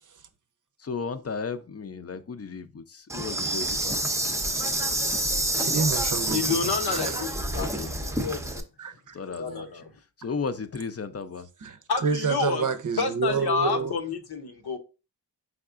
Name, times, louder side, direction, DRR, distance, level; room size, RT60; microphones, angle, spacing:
voice 1, 0.8-4.0 7.5-8.0 9.1-9.8 10.2-11.5, left 5 dB, 40° left, 0.5 m, -34 dB
Insect, 3.1-8.6, right 1 dB, 10° right, 0.6 m, -28 dB
voice 2, 4.7-5.0 5.5-7.2 8.8-9.2 11.6-14.0, right 5 dB, 55° right, 0.6 m, -29 dB
voice 3, 6.3-8.4 9.4-9.9 11.9-12.6 13.0-14.8, left 5 dB, 80° left, 0.8 m, -29 dB
4.8 x 3.5 x 2.4 m
cardioid pair, 55°, 38 cm